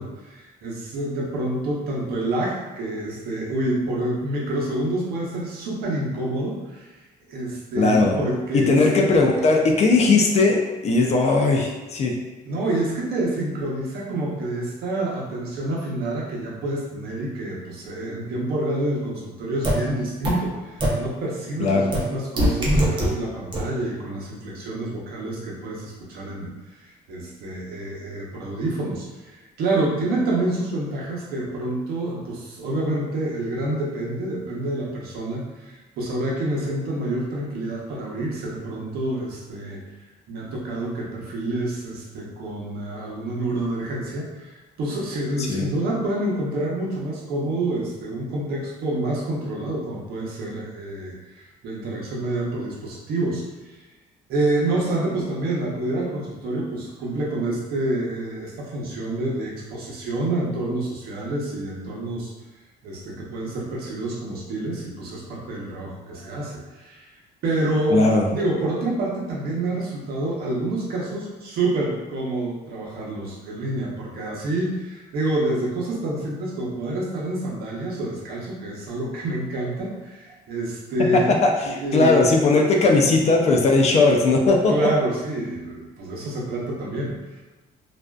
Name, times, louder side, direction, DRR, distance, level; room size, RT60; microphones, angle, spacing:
voice 1, 0.0-6.9 7.3-9.1 12.4-39.8 40.3-53.8 54.3-62.3 62.8-67.1 67.4-81.3 81.6-82.2 82.9-83.0 84.7-87.1, right 2 dB, 65° right, -4 dB, 0.8 m, -28 dB
voice 2, 7.8-8.2 8.5-12.2 21.6-21.9 45.5-45.6 67.9-68.3 81.1-84.9, left 3 dB, 40° left, 1 dB, 0.4 m, -18 dB
sound 1, 19.6-19.7 20.2-20.3 20.8-20.9 21.9-22.0 22.4-23.1 23.5-23.6, right 1 dB, 30° right, 0.6 m, -20 dB
2.4 x 2.2 x 2.2 m, 1.2 s
cardioid pair, 110°, 17 cm